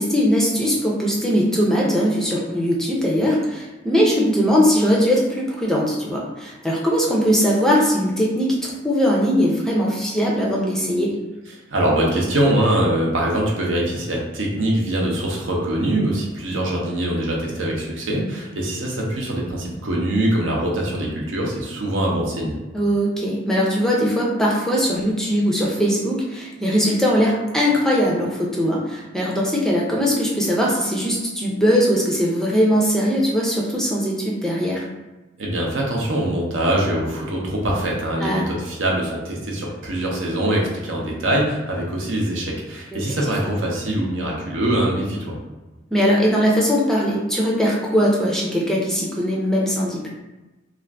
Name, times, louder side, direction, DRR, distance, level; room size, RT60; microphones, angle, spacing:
voice 1, 0.0-11.1 22.7-34.9 38.2-38.5 42.9-43.0 45.9-50.1, equal, 5° left, -3 dB, 0.4 m, -20 dB
voice 2, 11.7-22.6 35.4-45.4, right 1 dB, 75° right, -2 dB, 0.7 m, -23 dB
2.5 x 2.4 x 3.3 m, 1.1 s
head